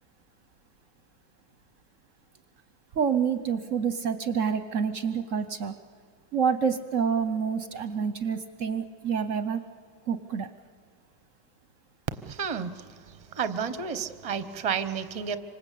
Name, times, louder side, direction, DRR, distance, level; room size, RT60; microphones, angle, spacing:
voice 1, 2.9-5.7 6.3-9.6 10.1-10.5, right 6 dB, 55° right, 10 dB, 0.9 m, -27 dB
voice 2, 12.3-12.8 13.3-15.4, right 7 dB, 30° right, 11 dB, 0.6 m, -31 dB
27.0 x 25.0 x 8.5 m, 2.1 s
omnidirectional pair, 2.2 m